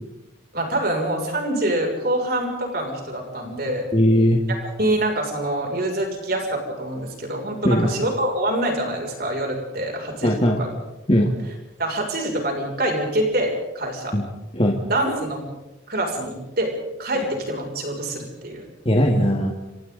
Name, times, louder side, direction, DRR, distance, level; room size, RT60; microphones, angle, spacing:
voice 1, 0.5-3.9 4.8-10.7 11.8-14.2 14.9-15.4 15.9-16.7 17.0-18.6, right 1 dB, 50° right, 1 dB, 6.6 m, -25 dB
voice 2, 3.9-4.4 7.6-7.9 10.2-10.6 11.1-11.3 14.1-14.2 14.5-14.8 18.9-19.5, equal, 30° left, 1 dB, 2.0 m, -18 dB
30.0 x 27.0 x 4.0 m, 1.0 s
head